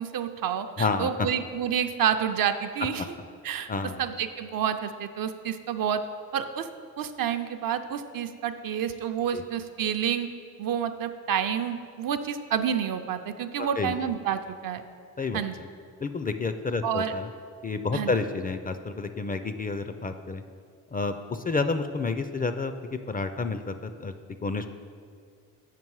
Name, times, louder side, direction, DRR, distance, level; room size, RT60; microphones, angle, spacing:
voice 1, 0.0-3.2 3.4-3.7 4.0-6.0 6.3-6.7 7.0-10.3 10.6-14.8 15.3-15.6 16.8-17.1 17.9-18.1, right 8 dB, 65° right, 7 dB, 0.6 m, -29 dB
voice 2, 0.8-1.1 3.7-4.0 9.3-9.4 13.6-14.0 15.2-15.7 16.0-17.3 17.6-20.4 20.9-22.7 23.1-24.1 24.4-24.7, left 4 dB, 25° left, 9 dB, 0.4 m, -30 dB
7.6 x 5.2 x 4.7 m, 2.2 s
supercardioid pair, 55°, 37 cm